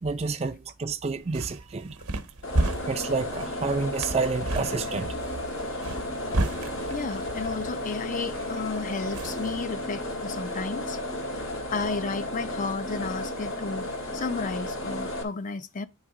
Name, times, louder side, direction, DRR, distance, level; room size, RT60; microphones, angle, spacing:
voice 1, 0.0-2.0 2.8-5.1, right 4 dB, 30° right, 0.4 m, -29 dB
sound 1, 1.1-9.6, right 1 dB, 80° right, 1.0 m, -33 dB
sound 2, 2.4-15.2, left 1 dB, 65° left, 1.4 m, -33 dB
voice 2, 6.9-11.0 11.3-11.4 11.7-13.9 14.1-15.9, left 4 dB, 35° left, 0.4 m, -33 dB
8.8 x 3.5 x 4.8 m
head